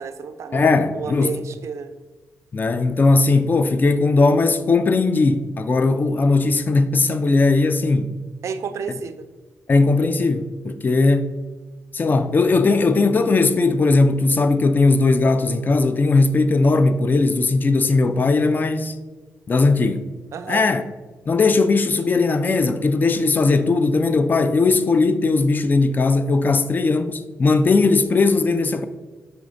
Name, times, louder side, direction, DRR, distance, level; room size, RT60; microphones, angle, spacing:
voice 1, 0.0-1.9 8.4-9.3 20.3-20.7, right 6 dB, 65° right, 0.3 m, -31 dB
voice 2, 0.5-1.4 2.5-8.1 9.7-11.3 11.9-19.0 19.5-20.0 20.5-20.8 21.3-28.9, left 3 dB, 35° left, 0.3 m, -18 dB
5.0 x 3.3 x 2.5 m
cardioid pair, 75°, 5 cm